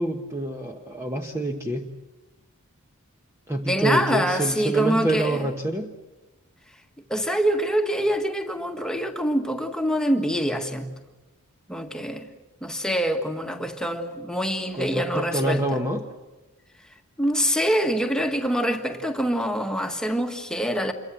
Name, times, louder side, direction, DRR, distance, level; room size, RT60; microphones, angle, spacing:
voice 1, 0.0-1.9 3.5-5.9 14.7-16.1, right 1 dB, 10° right, 1.1 m, -27 dB
voice 2, 3.7-5.5 7.1-10.9 11.7-12.3 12.6-15.8 17.2-20.9, equal, 5° left, 1.6 m, -25 dB
27.5 x 22.5 x 7.6 m
head